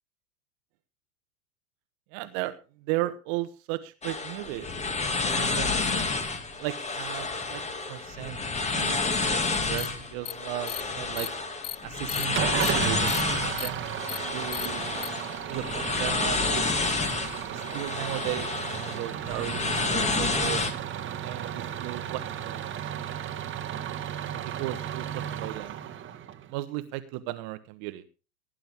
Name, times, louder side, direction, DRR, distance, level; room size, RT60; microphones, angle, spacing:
voice 1, 2.1-5.7 6.5-7.6 7.9-11.3 11.8-13.8 14.3-15.0 15.5-16.4 17.5-20.6 21.2-23.2 24.4-25.8 26.5-28.0, right 16 dB, 45° right, 12 dB, 1.3 m, -36 dB
sound 1, 4.0-20.7, left 3 dB, 15° left, 2.4 m, -30 dB
sound 2, 9.8-9.9 10.2-10.3 10.7-10.8 11.2-11.3 11.6-11.8 12.1-12.2 12.6-12.7 13.1-13.2 13.6-13.7 14.1-14.2 14.5-14.7 15.0-15.1, left 11 dB, 75° left, 0.8 m, -34 dB
Engine starting / Idling, 12.3-26.5, right 9 dB, 25° right, 1.7 m, -34 dB
17.5 x 10.5 x 3.6 m, 0.33 s
figure-of-eight pair, 95°, 45 cm